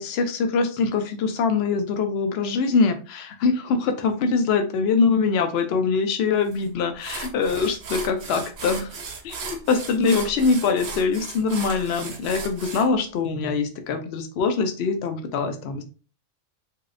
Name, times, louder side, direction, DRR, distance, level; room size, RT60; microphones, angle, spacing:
voice 1, 0.0-8.9 9.2-15.8, left 4 dB, 65° left, 7 dB, 0.8 m, -23 dB
sound 1, 6.5-6.6 7.0-12.9, right 4 dB, 65° right, 0.9 m, -36 dB
3.0 x 2.7 x 2.5 m, 0.37 s
omnidirectional pair, 1.3 m